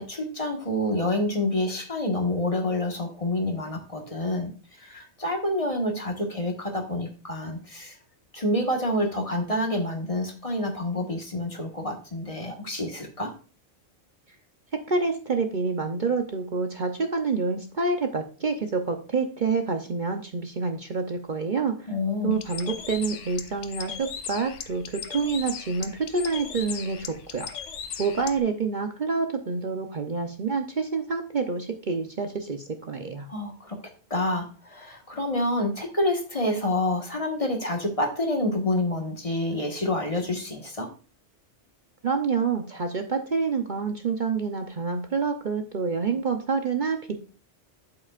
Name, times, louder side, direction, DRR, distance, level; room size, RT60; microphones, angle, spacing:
voice 1, 0.0-4.5 4.8-7.9 8.3-13.3 21.9-22.4 33.3-33.8 34.1-40.9, left 1 dB, 30° left, 3 dB, 1.5 m, -28 dB
voice 2, 14.7-21.9 22.2-27.5 28.0-33.3 42.0-47.1, right 4 dB, 45° right, 5 dB, 0.9 m, -27 dB
Bird, 22.3-28.4, left 7 dB, 80° left, 1.1 m, -38 dB
8.5 x 8.1 x 2.4 m, 0.37 s
omnidirectional pair, 1.2 m